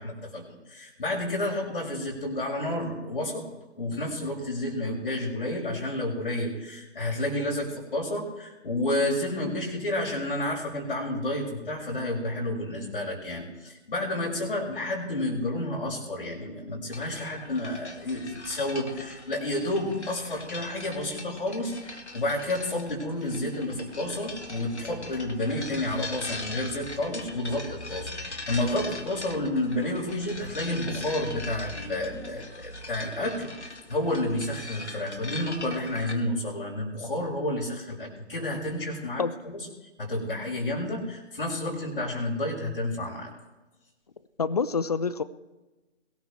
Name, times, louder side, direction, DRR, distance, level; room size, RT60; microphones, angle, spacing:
voice 1, 0.0-3.5 3.8-39.6 40.0-43.3, left 1 dB, 50° left, -3 dB, 5.4 m, -30 dB
sound 1, 16.9-36.1, left 2 dB, 75° left, 2.0 m, -41 dB
voice 2, 44.4-45.2, left 5 dB, 35° left, 16 dB, 0.6 m, -26 dB
22.0 x 13.5 x 3.3 m, 1.1 s
figure-of-eight pair, 145°, 34 cm